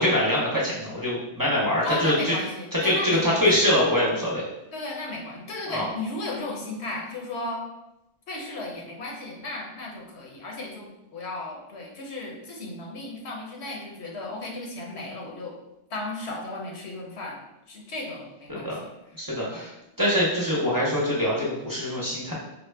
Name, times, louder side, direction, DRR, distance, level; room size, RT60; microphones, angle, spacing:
voice 1, 0.0-2.3 2.8-4.4 5.7-5.9 18.5-18.7 19.2-19.7 20.0-22.3, left 1 dB, 20° right, -6 dB, 0.7 m, -24 dB
voice 2, 1.8-3.5 4.7-7.6 8.3-15.5 15.9-17.4 17.7-19.0 19.4-19.7, left 2 dB, 80° left, -1 dB, 1.1 m, -35 dB
4.4 x 2.2 x 3.3 m, 0.91 s
omnidirectional pair, 1.1 m